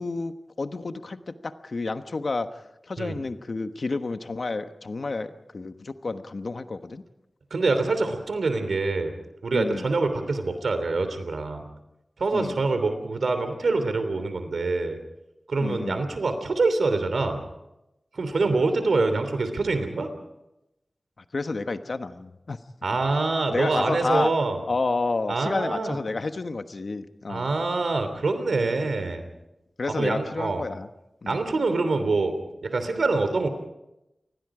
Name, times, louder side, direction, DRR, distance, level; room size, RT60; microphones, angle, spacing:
voice 1, 0.0-7.0 9.5-9.9 12.3-12.6 15.6-16.0 18.5-18.6 21.3-22.6 23.5-24.3 24.6-27.5 29.8-30.9 31.2-31.4, left 3 dB, 60° left, 9 dB, 1.2 m, -30 dB
voice 2, 7.5-9.1 9.4-11.6 12.2-15.0 15.5-17.4 18.1-20.1 22.8-24.6 25.3-26.0 27.3-29.3 30.0-30.6 31.3-32.3 32.6-33.5, right 3 dB, 90° right, 9 dB, 3.1 m, -25 dB
28.5 x 20.5 x 5.0 m, 0.91 s
wide cardioid pair, 90°, 0 cm